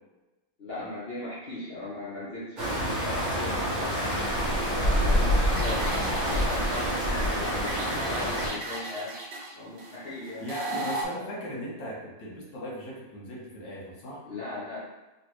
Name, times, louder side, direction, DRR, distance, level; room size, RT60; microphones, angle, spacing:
voice 1, 0.6-3.9 4.7-9.2 9.5-10.4 14.3-14.8, left 2 dB, 55° left, -9 dB, 0.6 m, -38 dB
sound 1, 2.6-8.5, equal, 50° right, 0.5 m, -27 dB
voice 2, 5.0-6.5 10.4-14.2, equal, 80° left, -4 dB, 1.6 m, -38 dB
sound 2, 5.6-11.0, right 2 dB, 85° right, 1.3 m, -37 dB
3.2 x 2.9 x 3.0 m, 1.1 s
omnidirectional pair, 2.0 m